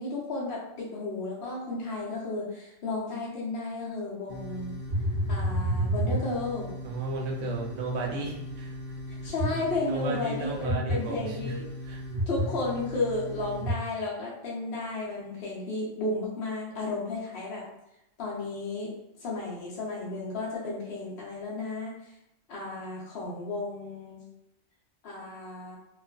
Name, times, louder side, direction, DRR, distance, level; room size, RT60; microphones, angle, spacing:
voice 1, 0.0-4.7 5.3-6.7 9.1-11.6 12.3-17.6 18.2-18.9 19.2-21.9 22.5-24.2 25.0-25.8, left 2 dB, 60° left, -4 dB, 0.8 m, -33 dB
sound 1, 4.3-13.7, right 1 dB, 20° right, 0.9 m, -32 dB
voice 2, 6.8-9.3 9.9-11.5 11.8-12.0, right 2 dB, 75° right, -1 dB, 1.0 m, -34 dB
2.4 x 2.3 x 2.2 m, 0.86 s
omnidirectional pair, 1.3 m